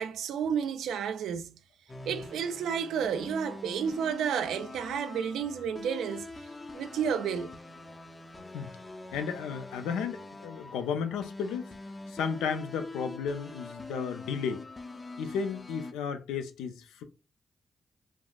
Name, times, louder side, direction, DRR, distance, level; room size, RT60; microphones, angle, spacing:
voice 1, 0.0-1.6 2.1-6.3 6.7-7.6, right 7 dB, 80° right, 0.3 m, -31 dB
sound 1, 1.9-15.9, left 2 dB, 30° left, 0.5 m, -44 dB
voice 2, 9.1-11.8 12.1-14.6 15.2-17.0, left 6 dB, 85° left, 0.3 m, -33 dB
3.4 x 2.4 x 2.2 m
supercardioid pair, 45°, 0 cm